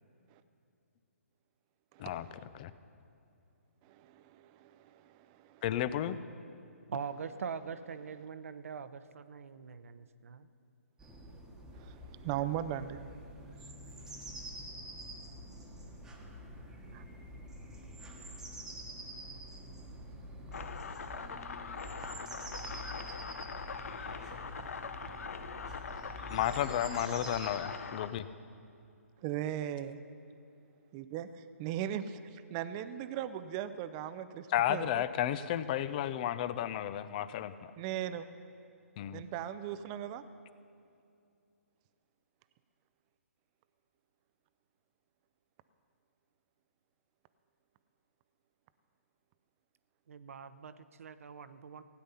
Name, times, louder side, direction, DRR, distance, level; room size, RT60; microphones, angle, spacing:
voice 1, 1.9-2.4 3.8-5.6 11.7-13.1 16.9-17.0 29.2-30.0 30.9-35.0 37.8-38.3 39.1-40.2, right 11 dB, 25° right, 12 dB, 0.4 m, -39 dB
voice 2, 5.6-6.2 26.3-28.3 34.5-37.7 39.0-39.2, left 11 dB, 35° left, 14 dB, 0.5 m, -33 dB
voice 3, 6.9-10.5 50.1-51.8, right 6 dB, 65° right, 12 dB, 0.7 m, -43 dB
sound 1, 11.0-27.6, right 1 dB, 5° right, 1.2 m, -47 dB
sound 2, 20.5-28.1, left 5 dB, 70° left, 0.8 m, -42 dB
16.0 x 9.7 x 5.6 m, 2.6 s
hypercardioid pair, 145°, 8 cm